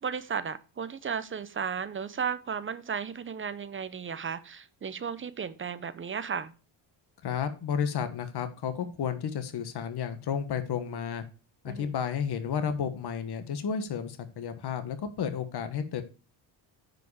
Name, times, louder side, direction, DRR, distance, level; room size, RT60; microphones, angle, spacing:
voice 1, 0.0-6.5 11.7-11.9, right 6 dB, 25° right, 0.6 m, -34 dB
voice 2, 7.2-11.2 11.6-16.0, left 7 dB, 50° left, 1.4 m, -32 dB
9.4 x 5.0 x 4.8 m
cardioid pair, 135°, 49 cm